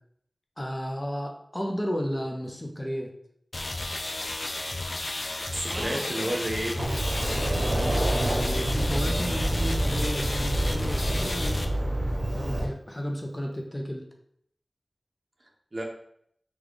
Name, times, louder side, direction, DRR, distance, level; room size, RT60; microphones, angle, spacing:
voice 1, 0.6-3.1 7.9-11.7 12.3-14.0, equal, 25° left, 2 dB, 0.7 m, -33 dB
sound 1, 3.5-11.6, left 2 dB, 60° left, 0.4 m, -33 dB
voice 2, 5.5-6.8 15.7-15.8, right 1 dB, 45° right, 0 dB, 0.8 m, -31 dB
sound 2, 5.7-9.3, equal, 15° right, 0.7 m, -43 dB
Sliding door, 6.8-12.7, right 1 dB, 90° right, 0.6 m, -27 dB
3.9 x 2.3 x 3.2 m, 0.69 s
wide cardioid pair, 45°, 0 cm